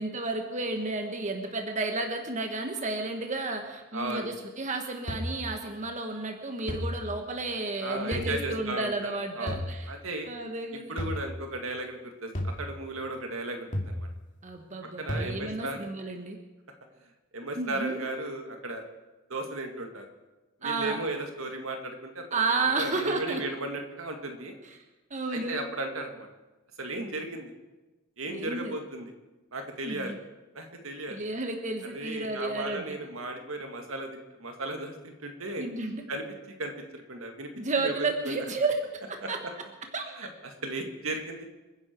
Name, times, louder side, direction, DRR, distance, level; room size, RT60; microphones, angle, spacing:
voice 1, 0.0-9.9 10.3-11.0 14.4-16.4 17.5-18.0 20.6-21.0 22.3-23.4 25.1-25.6 28.3-28.7 29.8-30.2 31.1-33.0 35.6-36.0 37.5-38.7 39.3-39.4 39.9-40.0, right 3 dB, 35° right, 4 dB, 1.5 m, -32 dB
voice 2, 3.9-4.3 7.8-10.3 10.9-14.1 15.0-15.9 17.3-18.8 19.3-20.1 20.6-22.4 22.8-24.5 25.3-26.3 26.8-27.5 28.2-29.1 29.5-30.2 30.5-31.2 31.9-35.7 36.1-36.2 36.6-37.5 37.8-38.4 39.2-39.3 40.2-41.5, right 2 dB, 75° right, 4 dB, 2.1 m, -35 dB
sound 1, 5.1-5.5 6.7-7.1 8.1-8.5 9.5-9.9 11.0-11.4 12.3-12.7 13.7-14.1 15.1-15.3, left 1 dB, 40° left, 2.4 m, -33 dB
28.0 x 10.5 x 4.6 m, 1.1 s
head